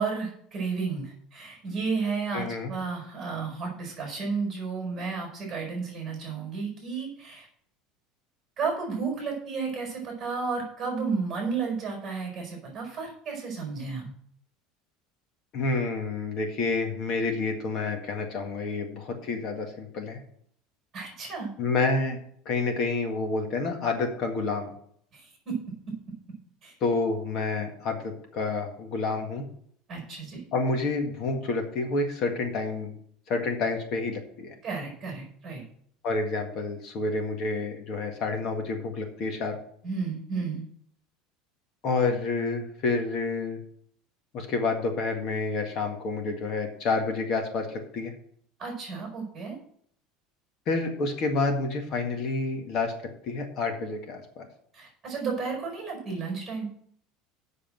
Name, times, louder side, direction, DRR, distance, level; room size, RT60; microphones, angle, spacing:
voice 1, 0.0-7.5 8.6-14.1 20.9-21.5 25.1-25.6 25.9-26.0 26.6-26.7 29.9-30.4 34.6-35.6 39.8-40.6 48.6-49.6 54.7-56.7, right 5 dB, 20° right, 0 dB, 5.0 m, -32 dB
voice 2, 2.3-2.7 15.5-20.2 21.6-22.2 22.5-24.7 26.8-29.4 30.5-32.9 33.3-34.5 36.0-39.6 41.8-43.6 44.3-48.1 50.7-52.9 53.3-54.5, left 3 dB, 40° left, 4 dB, 1.8 m, -29 dB
7.7 x 6.4 x 7.7 m, 0.64 s
cardioid pair, 160°, 0 cm